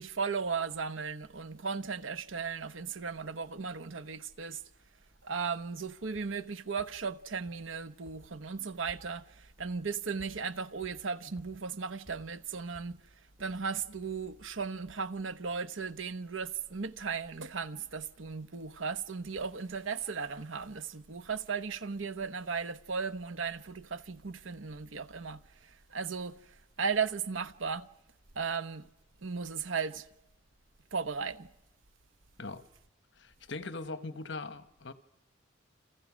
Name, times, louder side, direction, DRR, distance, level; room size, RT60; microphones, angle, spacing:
voice 1, 0.0-4.6 5.2-13.0 13.4-26.4 26.8-27.9 28.3-28.8 29.2-30.1 30.9-31.5, right 5 dB, 75° right, 1.0 m, -36 dB
sound 1, 6.1-6.2 6.8-6.9 7.5-7.6 8.1-8.2 8.5-9.0 9.6-9.7 10.2-10.3 10.8-10.9 11.4-11.5 12.1-12.2 12.7-12.8 13.4-13.5, left 1 dB, 5° right, 7.5 m, -54 dB
voice 2, 33.2-34.9, left 3 dB, 60° left, 1.3 m, -40 dB
30.0 x 27.0 x 6.3 m
head